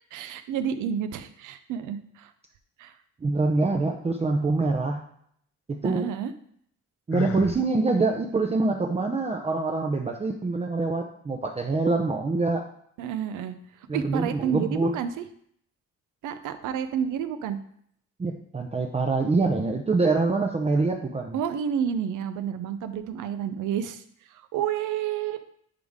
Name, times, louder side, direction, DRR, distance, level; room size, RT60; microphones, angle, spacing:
voice 1, 0.1-2.3 2.8-3.0 5.8-6.3 13.0-15.2 16.2-17.6 21.3-25.5, right 8 dB, 85° right, 10 dB, 0.7 m, -30 dB
voice 2, 3.2-5.1 5.7-6.1 7.1-12.6 13.9-15.0 18.2-21.4, right 3 dB, 20° right, 3 dB, 0.6 m, -25 dB
Sigh, 7.1-7.6, left 10 dB, 50° left, 0.6 m, -33 dB
10.5 x 3.6 x 3.6 m, 0.66 s
cardioid pair, 90°, 30 cm